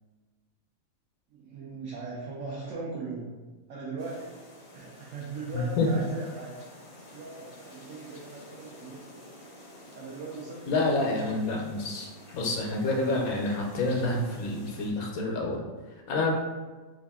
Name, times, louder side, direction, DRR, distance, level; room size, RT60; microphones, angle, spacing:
voice 1, 1.3-3.3 3.7-4.4 4.7-6.6 7.1-9.0 9.9-11.1, right 4 dB, 70° right, -4 dB, 0.9 m, -39 dB
sound 1, 4.0-14.9, left 1 dB, 40° left, 0.5 m, -50 dB
voice 2, 5.5-5.9 10.7-15.6 16.1-16.3, left 2 dB, 85° left, 0 dB, 1.2 m, -28 dB
3.3 x 2.5 x 3.5 m, 1.3 s
omnidirectional pair, 1.5 m